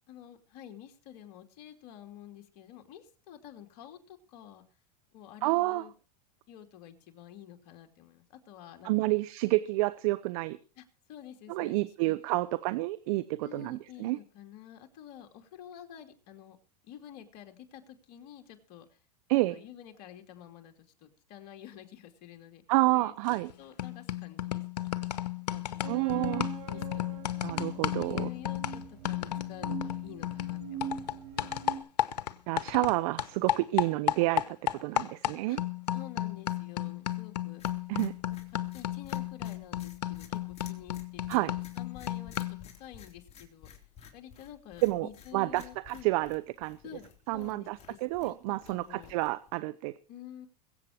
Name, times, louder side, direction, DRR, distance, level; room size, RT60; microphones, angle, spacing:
voice 1, 0.1-4.6 5.1-5.9 6.5-9.1 10.8-12.5 13.4-16.6 16.8-19.0 19.5-22.6 22.9-24.9 25.3-26.1 26.7-27.2 28.0-31.2 35.5-35.6 35.9-37.8 38.7-43.8 44.1-46.1 46.8-47.1 47.3-49.1 50.1-50.5, left 10 dB, 55° left, 5 dB, 2.8 m, -50 dB
voice 2, 5.4-5.8 8.8-10.6 11.5-14.2 19.3-19.6 22.7-23.5 25.9-26.5 27.4-28.3 32.5-35.6 37.9-38.1 41.3-41.5 44.8-46.8 47.3-49.9, right 20 dB, 60° right, 15 dB, 0.8 m, -29 dB
sound 1, 23.3-23.5 23.8-32.9 33.2-42.7, left 12 dB, 90° left, 1.0 m, -34 dB
sound 2, 25.8-31.8, right 8 dB, 80° right, 4.3 m, -43 dB
sound 3, 37.6-49.6, left 8 dB, 30° left, 3.7 m, -54 dB
22.0 x 8.4 x 4.5 m, 0.35 s
hypercardioid pair, 115°, 21 cm